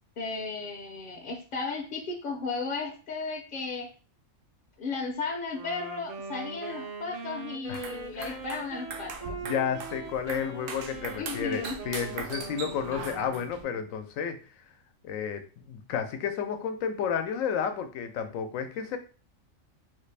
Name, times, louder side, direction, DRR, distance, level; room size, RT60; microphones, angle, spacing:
voice 1, 0.2-3.9 4.8-9.4 11.2-11.8, left 4 dB, 55° left, 1 dB, 0.6 m, -35 dB
Wind instrument woodwind instrument, 5.5-13.8, right 4 dB, 55° right, 0.4 m, -41 dB
sound 1, 7.6-13.6, right 4 dB, 75° right, 1.0 m, -41 dB
voice 2, 9.5-14.4 15.0-19.0, left 7 dB, 85° left, 8 dB, 1.0 m, -31 dB
3.5 x 2.4 x 3.2 m, 0.36 s
omnidirectional pair, 1.3 m